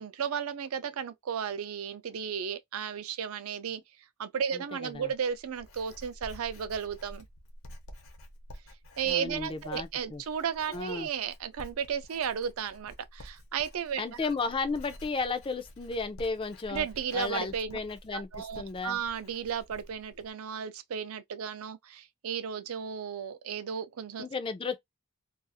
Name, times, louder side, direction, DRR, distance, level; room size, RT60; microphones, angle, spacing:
voice 1, 0.0-3.8 4.2-7.3 9.0-14.0 16.7-17.8 18.1-24.3, right 7 dB, 75° right, 0.4 m, -34 dB
voice 2, 4.5-5.1 9.0-10.2 10.7-11.1 14.0-16.9 17.1-19.0 24.2-24.8, left 4 dB, 25° left, 0.3 m, -34 dB
Writing, 4.9-20.3, equal, 65° left, 0.7 m, -50 dB
2.4 x 2.4 x 2.6 m
head